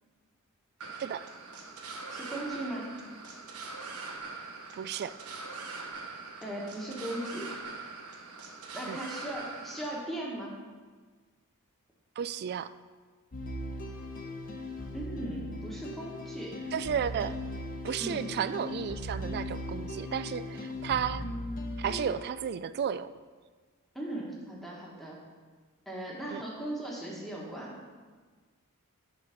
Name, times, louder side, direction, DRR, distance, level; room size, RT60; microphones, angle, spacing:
sound 1, 0.8-10.0, right 3 dB, 75° right, 1.1 m, -42 dB
voice 1, 2.1-2.9 6.4-7.5 8.7-10.5 14.9-16.7 18.0-18.2 23.9-25.2 25.8-27.8, right 1 dB, ahead, -4 dB, 1.4 m, -38 dB
voice 2, 4.7-5.1 8.9-9.0 12.2-12.7 16.7-17.3 17.8-21.3 21.8-23.1 26.3-26.4, right 8 dB, 45° right, 15 dB, 0.3 m, -33 dB
sound 2, 13.3-22.2, left 1 dB, 40° left, 0.9 m, -38 dB
10.5 x 4.0 x 5.8 m, 1.5 s
head